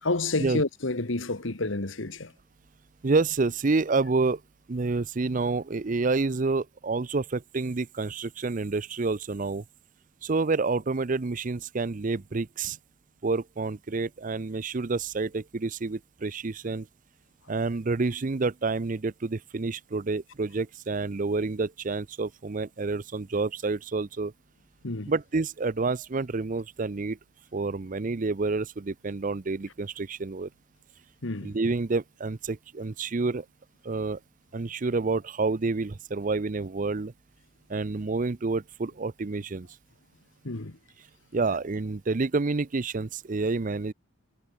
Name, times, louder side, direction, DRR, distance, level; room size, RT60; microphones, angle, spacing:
voice 1, 0.0-2.3 24.8-25.1 31.2-31.5 40.4-40.8, left 2 dB, 65° left, 1.7 m, -29 dB
voice 2, 3.0-4.4 4.7-9.6 10.2-12.8 13.2-16.9 17.5-24.3 25.1-27.2 27.5-30.5 31.4-33.5 33.8-34.2 34.5-37.1 37.7-39.7 41.3-43.9, right 3 dB, 40° right, 0.5 m, -28 dB
head